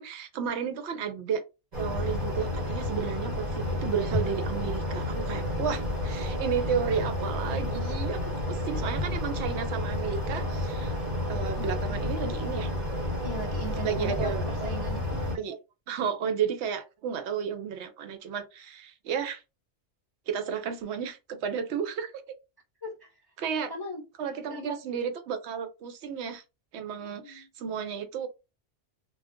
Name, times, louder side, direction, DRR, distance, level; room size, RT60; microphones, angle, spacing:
voice 1, 0.0-1.4 1.8-10.9 11.3-12.7 13.8-14.5 15.1-15.6 15.9-19.4 20.3-22.1 23.4-23.7 24.2-26.4 26.7-28.3, right 7 dB, 75° right, 0.8 m, -32 dB
sound 1, 1.7-15.4, left 1 dB, 40° right, 1.1 m, -31 dB
voice 2, 13.2-15.1 22.8-23.2 23.7-24.8 27.0-27.5, equal, 35° left, 0.3 m, -40 dB
2.3 x 2.2 x 3.5 m
omnidirectional pair, 1.2 m